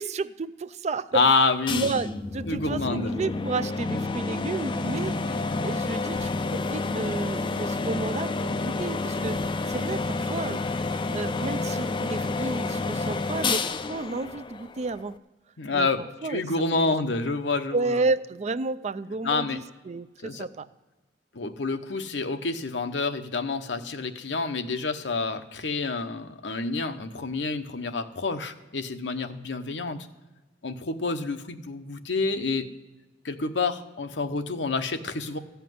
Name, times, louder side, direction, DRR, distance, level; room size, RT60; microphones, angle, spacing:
voice 1, 0.0-1.2 1.7-9.4 9.7-10.6 11.1-15.2 15.7-15.9 16.2-16.5 16.7-16.9 17.7-20.7, right 3 dB, 40° right, 14 dB, 0.4 m, -31 dB
voice 2, 1.1-2.0 2.5-3.2 15.6-17.8 19.2-19.6 20.2-20.5 21.3-30.1 30.6-32.7 33.2-35.4, left 3 dB, 75° left, 7 dB, 0.9 m, -28 dB
sound 1, 1.7-15.2, left 3 dB, 30° left, 0.5 m, -29 dB
14.5 x 5.8 x 9.3 m, 1.2 s
head